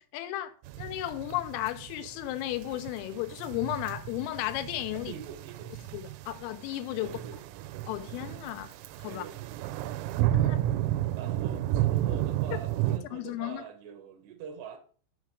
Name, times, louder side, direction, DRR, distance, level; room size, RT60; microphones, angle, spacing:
voice 1, 0.0-5.1 5.9-7.2 7.9-9.2 10.3-10.6 13.1-13.7, left 14 dB, 90° left, 3.4 m, -34 dB
sound 1, 0.6-13.0, right 13 dB, 85° right, 3.2 m, -32 dB
voice 2, 4.9-5.8 7.0-7.4 9.1-9.6 10.4-10.5 11.1-14.8, right 7 dB, 70° right, 3.0 m, -44 dB
7.3 x 4.8 x 4.8 m
omnidirectional pair, 5.8 m